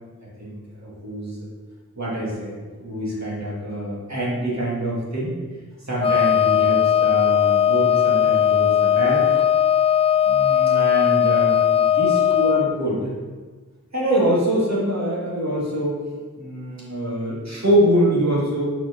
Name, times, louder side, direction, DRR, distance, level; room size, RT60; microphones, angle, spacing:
voice 1, 0.4-1.4 1.9-5.3 5.9-9.3 10.2-13.2 13.9-16.0 16.4-18.7, right 1 dB, 50° right, -6 dB, 2.3 m, -24 dB
Wind instrument woodwind instrument, 6.0-12.7, left 9 dB, 15° left, 0.3 m, -18 dB
5.8 x 4.7 x 5.2 m, 1.4 s
wide cardioid pair, 40°, 35 cm